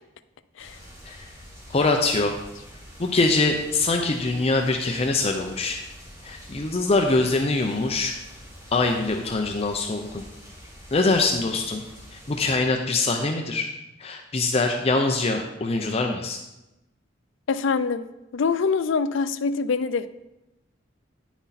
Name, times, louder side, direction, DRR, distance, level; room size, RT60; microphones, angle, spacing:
sound 1, 0.6-12.6, equal, 15° right, 2.6 m, -46 dB
voice 1, 1.7-2.4 3.0-5.8 6.2-8.1 8.7-10.2 10.9-11.8 12.1-13.7 14.0-16.4, left 3 dB, 30° left, 3 dB, 0.6 m, -23 dB
voice 2, 17.5-18.0 18.3-20.1, left 5 dB, 75° left, 13 dB, 0.4 m, -24 dB
10.0 x 6.1 x 4.1 m, 0.96 s
head